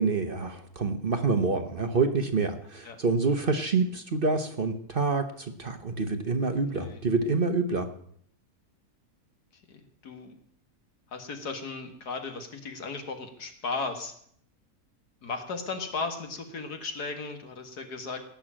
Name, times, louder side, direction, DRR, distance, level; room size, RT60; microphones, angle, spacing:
voice 1, 0.0-7.9, right 4 dB, 40° right, 7 dB, 1.1 m, -27 dB
voice 2, 9.7-10.4 11.1-14.1 15.2-18.2, left 4 dB, 80° left, 6 dB, 2.3 m, -36 dB
17.5 x 6.3 x 8.7 m, 0.64 s
omnidirectional pair, 1.7 m